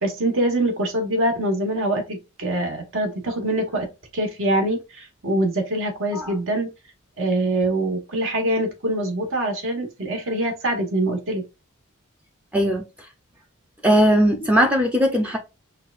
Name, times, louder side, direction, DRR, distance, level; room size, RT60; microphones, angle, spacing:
voice 1, 0.0-6.7 7.2-11.4, right 1 dB, 65° right, 1.3 m, -24 dB
voice 2, 12.5-12.8 13.8-15.4, equal, 5° right, 0.5 m, -18 dB
5.6 x 2.3 x 2.4 m
head